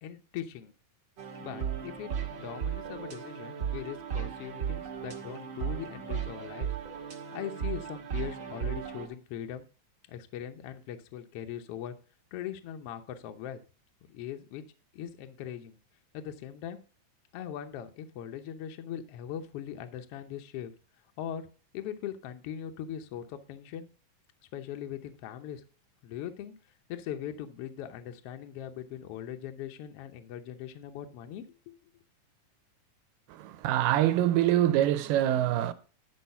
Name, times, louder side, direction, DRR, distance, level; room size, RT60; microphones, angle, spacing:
voice 1, 0.0-0.7 1.4-6.7 7.3-9.6 10.1-11.9 12.3-13.6 14.1-14.6 14.9-15.8 16.1-16.8 17.3-20.7 21.2-21.4 21.7-23.9 24.5-25.6 26.0-26.5 26.9-31.7, left 10 dB, 80° left, 1.3 m, -40 dB
sound 1, 1.2-9.1, right 8 dB, 55° right, 1.3 m, -36 dB
voice 2, 33.3-35.7, right 12 dB, 85° right, 2.3 m, -25 dB
10.5 x 4.8 x 5.6 m
omnidirectional pair, 3.9 m